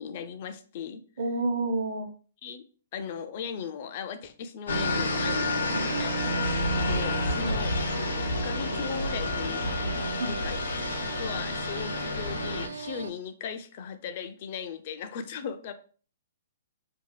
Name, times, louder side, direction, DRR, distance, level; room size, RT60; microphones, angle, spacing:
voice 1, 0.0-1.0 2.4-2.7 2.9-6.1 6.7-7.7 8.2-9.7 10.3-10.6 11.0-15.7, left 7 dB, 40° left, 9 dB, 0.3 m, -38 dB
voice 2, 1.2-2.1 5.7-6.0 7.4-7.6 10.2-10.3, right 2 dB, 70° right, 3 dB, 0.9 m, -30 dB
sound 1, 4.7-12.7, left 1 dB, 85° left, 0.6 m, -29 dB
sound 2, 5.2-13.1, right 5 dB, 85° right, 0.3 m, -41 dB
2.6 x 2.3 x 3.1 m, 0.40 s
hypercardioid pair, 165°, 0 cm